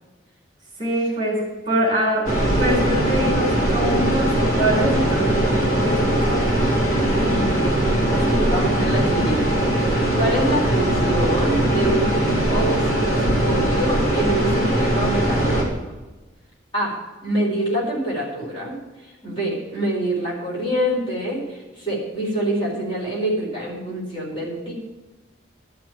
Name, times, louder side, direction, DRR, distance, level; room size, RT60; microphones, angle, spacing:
voice 1, 0.8-1.4 1.7-2.3 2.6-6.5 8.3-8.6, right 1 dB, 25° right, -2 dB, 3.9 m, -24 dB
sound 1, 2.2-15.6, right 1 dB, 45° left, 3.4 m, -20 dB
voice 2, 7.2-7.8 8.1-9.4 9.9-12.1 12.5-15.8 16.7-24.7, right 1 dB, 25° left, -5 dB, 4.3 m, -26 dB
12.0 x 6.2 x 8.4 m, 1.2 s
head